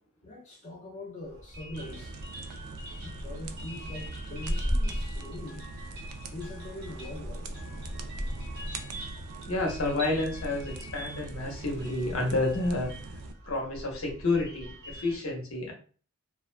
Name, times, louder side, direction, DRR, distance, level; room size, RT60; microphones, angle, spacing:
voice 1, 0.2-2.2 3.1-5.7 6.3-7.5, left 1 dB, 30° left, 0.4 m, -42 dB
sound 1, 1.2-15.2, equal, 45° right, 0.9 m, -38 dB
sound 2, 1.8-13.3, right 3 dB, 90° right, 0.3 m, -43 dB
voice 2, 9.5-12.9 13.5-15.7, left 2 dB, 65° left, 0.7 m, -30 dB
2.4 x 2.1 x 2.4 m
head